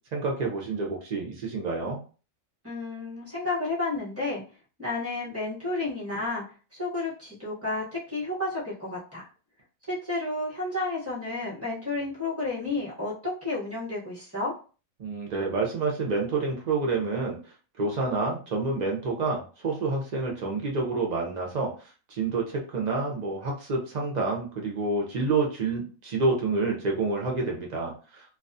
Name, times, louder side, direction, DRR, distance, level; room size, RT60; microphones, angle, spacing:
voice 1, 0.1-2.0 15.0-17.4 17.8-21.7 22.1-28.2, right 3 dB, 55° right, -1 dB, 0.4 m, -28 dB
voice 2, 2.6-4.4 4.8-6.4 6.8-9.3 9.9-14.5, left 2 dB, 10° right, -5 dB, 0.8 m, -31 dB
2.3 x 2.3 x 2.6 m, 0.36 s
omnidirectional pair, 1.5 m